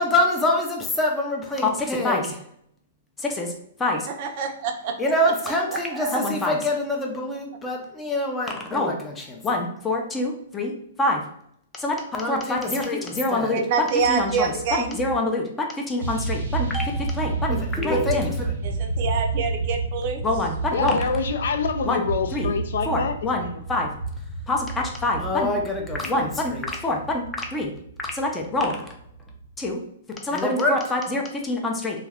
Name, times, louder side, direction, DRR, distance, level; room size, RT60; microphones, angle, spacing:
voice 1, 0.0-2.4 3.4-3.5 3.8-4.0 5.0-10.7 11.0-11.2 11.8-13.6 14.1-18.6 20.2-21.0 21.8-22.0 22.3-22.5 22.9-23.9 24.5-27.2 27.5-27.7 28.1-28.9 29.6-29.8 30.2-32.1, left 2 dB, 10° left, 1 dB, 0.5 m, -25 dB
voice 2, 4.2-4.9 5.7-6.2 13.5-15.0 18.6-20.2, right 5 dB, 45° right, 4 dB, 0.5 m, -26 dB
sound 1, 14.0-15.2 16.0-29.7, right 4 dB, 80° right, 0.7 m, -31 dB
voice 3, 20.7-23.1 26.0-26.3, left 5 dB, 75° left, 7 dB, 0.4 m, -26 dB
2.3 x 2.2 x 3.4 m, 0.69 s
hypercardioid pair, 155°, 0 cm